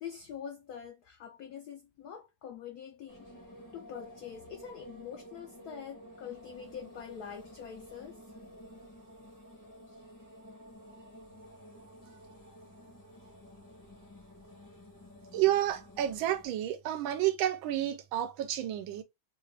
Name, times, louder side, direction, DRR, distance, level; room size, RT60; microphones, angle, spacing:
voice 1, 0.0-3.3 3.7-8.2, left 8 dB, 75° left, 0.9 m, -45 dB
sound 1, 3.1-16.4, equal, 20° left, 0.5 m, -52 dB
voice 2, 15.3-19.0, right 13 dB, 85° right, 1.4 m, -30 dB
3.5 x 2.4 x 3.1 m
omnidirectional pair, 2.2 m